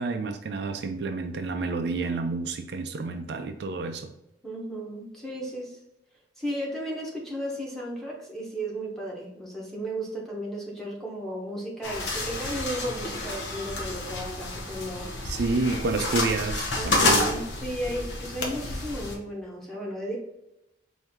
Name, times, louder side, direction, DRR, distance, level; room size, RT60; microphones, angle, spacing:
voice 1, 0.0-4.1 15.2-17.3, right 3 dB, 60° right, 6 dB, 0.4 m, -29 dB
voice 2, 4.4-5.8 6.4-15.1 16.7-20.2, right 1 dB, ahead, -3 dB, 1.0 m, -34 dB
sound 1, 11.8-19.1, left 2 dB, 75° left, 0.9 m, -29 dB
4.4 x 2.7 x 3.5 m, 0.89 s
head